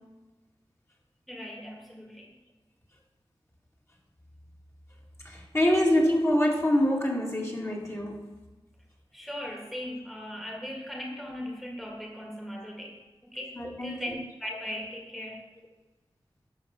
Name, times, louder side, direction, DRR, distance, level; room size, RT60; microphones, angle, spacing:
voice 1, 1.3-2.3 9.1-15.5, equal, ahead, 0 dB, 1.7 m, -39 dB
voice 2, 5.2-8.3 13.6-14.2, left 1 dB, 30° left, -2 dB, 2.3 m, -25 dB
12.0 x 6.7 x 5.9 m, 1.2 s
wide cardioid pair, 80°, 10 cm